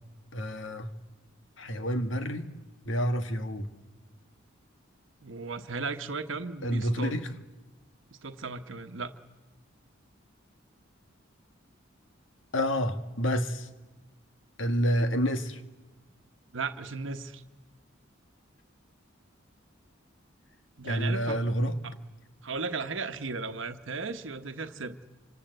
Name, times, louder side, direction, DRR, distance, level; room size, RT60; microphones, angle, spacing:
voice 1, 0.3-0.9 1.6-2.5 2.9-3.7 6.6-7.3 12.5-13.7 14.6-15.6 20.8-21.7, equal, 70° left, 8 dB, 1.9 m, -28 dB
voice 2, 5.2-7.2 8.2-9.1 16.5-17.4 20.8-21.4 21.8-21.9 22.4-25.0, right 4 dB, 70° right, 8 dB, 1.2 m, -35 dB
28.0 x 25.5 x 8.0 m, 1.1 s
head